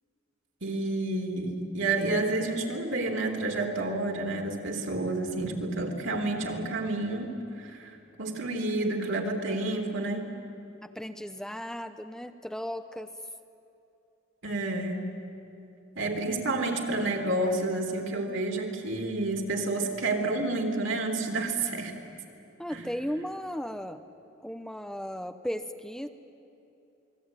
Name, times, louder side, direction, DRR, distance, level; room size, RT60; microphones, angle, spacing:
voice 1, 0.6-10.3 14.4-15.0 16.0-21.9 22.7-22.8, right 2 dB, 70° right, 3 dB, 3.5 m, -30 dB
voice 2, 10.8-13.1 22.6-24.0 24.4-26.1, equal, 5° left, 8 dB, 0.8 m, -36 dB
28.0 x 21.0 x 9.6 m, 2.8 s
head